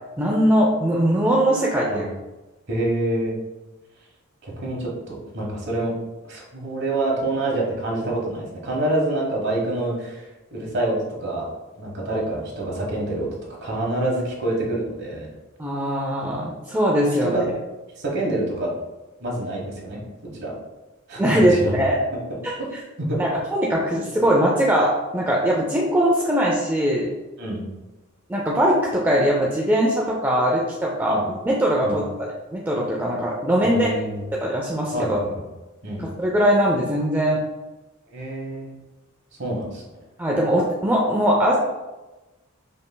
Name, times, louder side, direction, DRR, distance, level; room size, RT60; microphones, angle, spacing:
voice 1, 0.2-2.1 15.6-17.4 21.2-22.0 22.4-22.5 23.2-27.1 28.3-32.0 32.5-33.9 34.4-35.2 36.0-37.4 40.2-41.6, equal, 10° right, -3 dB, 0.4 m, -21 dB
voice 2, 2.7-3.3 4.4-5.9 6.3-11.5 11.8-13.3 13.6-15.3 17.2-17.5 18.0-18.7 19.2-20.0 20.3-20.5 21.1-21.7 22.3-22.7 23.0-23.2 23.7-24.0 27.4-27.6 31.1-31.2 31.8-32.0 33.6-34.3 34.9-35.4 35.8-36.0 38.1-38.8 39.4-39.8, right 1 dB, 55° right, -3 dB, 1.2 m, -27 dB
5.2 x 3.2 x 2.2 m, 1.1 s
head